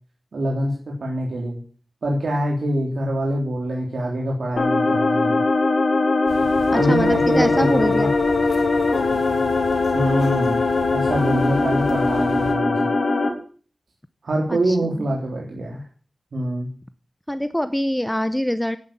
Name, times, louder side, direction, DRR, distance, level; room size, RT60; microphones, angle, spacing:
voice 1, 0.3-1.6 2.0-5.4 6.7-8.1 9.9-10.6 10.9-12.9 14.2-15.8 16.3-16.7, right 1 dB, 75° right, -2 dB, 3.5 m, -24 dB
sound 1, 4.6-13.3, left 3 dB, 65° left, 3.4 m, -20 dB
sound 2, 6.3-12.6, left 3 dB, 90° left, 2.8 m, -36 dB
voice 2, 6.7-8.1 14.5-15.1 17.3-18.8, equal, 5° left, 12 dB, 0.8 m, -24 dB
10.5 x 10.0 x 9.0 m, 0.43 s
wide cardioid pair, 95°, 0 cm